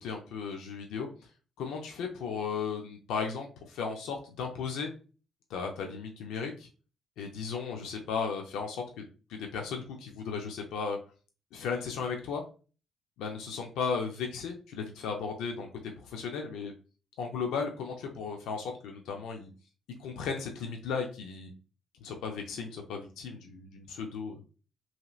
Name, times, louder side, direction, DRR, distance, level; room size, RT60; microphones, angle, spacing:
voice 1, 0.0-1.1 1.6-4.9 5.5-6.7 7.2-9.0 9.3-11.0 11.5-12.4 13.2-15.7 16.0-16.7 17.2-19.5 20.0-21.5 22.0-24.4, left 5 dB, 90° left, 2 dB, 0.5 m, -35 dB
2.9 x 2.8 x 2.3 m, 0.36 s
cardioid pair, 90°, 0 cm